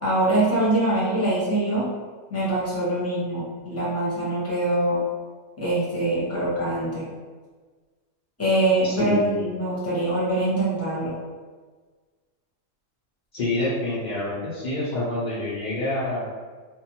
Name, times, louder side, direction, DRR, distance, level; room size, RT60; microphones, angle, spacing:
voice 1, 0.0-1.8 2.3-5.0 5.6-7.1 8.4-11.1, right 1 dB, 15° left, -8 dB, 0.7 m, -23 dB
voice 2, 8.8-9.3 13.3-16.3, left 2 dB, 80° left, -9 dB, 0.4 m, -27 dB
2.5 x 2.2 x 2.9 m, 1.4 s
omnidirectional pair, 1.6 m